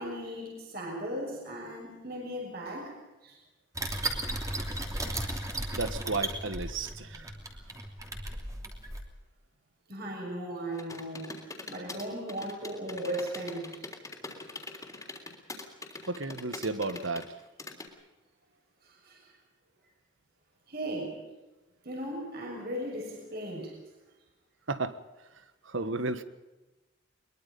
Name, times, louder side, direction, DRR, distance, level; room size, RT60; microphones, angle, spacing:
voice 1, 0.0-3.0 3.2-3.4 9.9-11.4 11.7-13.8 19.0-19.3 20.7-21.2 21.8-23.8, right 1 dB, 50° right, 0 dB, 6.4 m, -37 dB
sound 1, 3.8-9.0, right 1 dB, 15° right, 3.0 m, -35 dB
voice 2, 5.7-7.3 16.1-17.3 24.7-25.0 25.6-26.2, right 3 dB, 75° right, 12 dB, 1.5 m, -33 dB
sound 2, 10.7-17.9, left 3 dB, 15° left, 3.5 m, -43 dB
23.0 x 22.5 x 5.4 m, 1.1 s
head